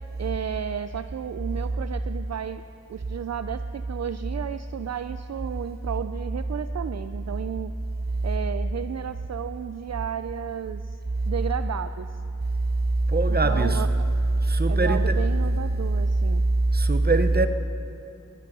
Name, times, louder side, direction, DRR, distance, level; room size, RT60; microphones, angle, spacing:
voice 1, 0.2-2.6 2.9-7.7 8.2-11.0 11.3-12.1 13.4-13.9 14.7-16.4, right 9 dB, 55° right, 0.4 m, -33 dB
voice 2, 13.1-13.8 14.4-15.0 16.7-17.5, right 2 dB, 30° right, 0.8 m, -21 dB
20.0 x 12.0 x 5.5 m
wide cardioid pair, 90°, 32 cm